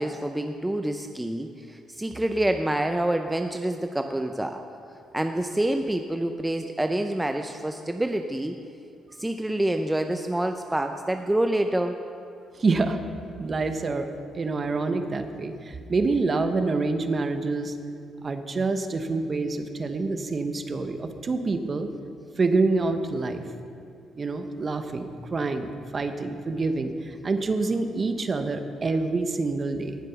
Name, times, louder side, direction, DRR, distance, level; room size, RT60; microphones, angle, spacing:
voice 1, 0.0-4.6 5.1-8.6 9.2-12.0, right 1 dB, 10° right, 6 dB, 0.6 m, -27 dB
voice 2, 12.6-13.0 13.4-14.1 14.3-17.7 18.2-21.9 22.4-23.4 24.2-30.0, right 3 dB, 35° right, 8 dB, 1.0 m, -27 dB
18.5 x 7.5 x 5.8 m, 2.5 s
cardioid pair, 90°, 0 cm